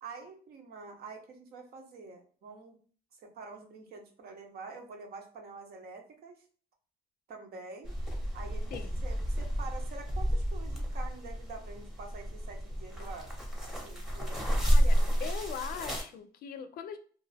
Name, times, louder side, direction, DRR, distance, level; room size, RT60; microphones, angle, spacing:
voice 1, 0.0-2.8 3.2-6.4 7.3-7.9 8.3-8.8 9.0-13.3 13.6-14.4, right 4 dB, 65° right, 3 dB, 0.8 m, -47 dB
sound 1, 7.8-16.0, equal, 5° right, 0.8 m, -30 dB
voice 2, 8.7-9.0 14.6-17.0, left 7 dB, 60° left, 9 dB, 0.4 m, -41 dB
2.5 x 2.3 x 3.2 m, 0.43 s
cardioid pair, 110°, 17 cm